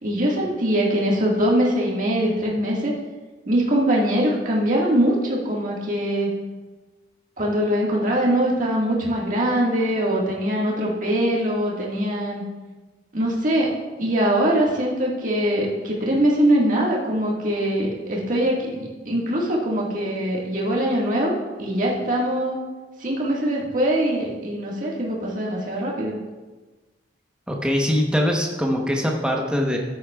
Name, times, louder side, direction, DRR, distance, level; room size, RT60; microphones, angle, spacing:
voice 1, 0.0-2.9 3.5-6.3 7.4-12.4 13.1-13.7 14.0-22.6 23.0-26.2, right 1 dB, 45° right, -3 dB, 1.8 m, -22 dB
voice 2, 27.5-29.8, equal, 5° right, 0 dB, 1.0 m, -22 dB
13.5 x 8.5 x 2.4 m, 1.3 s
head